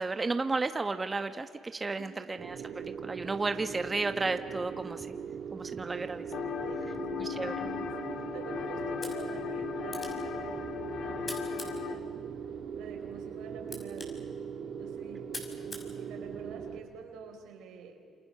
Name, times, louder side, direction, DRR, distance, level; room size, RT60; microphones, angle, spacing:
voice 1, 0.0-5.2 5.5-6.2 7.2-7.7, right 3 dB, 25° right, 8 dB, 1.2 m, -33 dB
voice 2, 1.9-2.4 5.9-6.0 6.6-8.0 8.3-10.6 11.0-12.1 12.7-14.2 14.7-18.1, right 6 dB, 90° right, 4 dB, 4.4 m, -49 dB
sound 1, 2.4-16.8, right 7 dB, 75° right, 2.6 m, -40 dB
sound 2, 6.3-12.0, left 8 dB, 70° left, 2.2 m, -37 dB
sound 3, 8.9-16.8, left 2 dB, 30° left, 6.1 m, -48 dB
28.5 x 27.5 x 6.8 m, 2.3 s
cardioid pair, 90°, 0 cm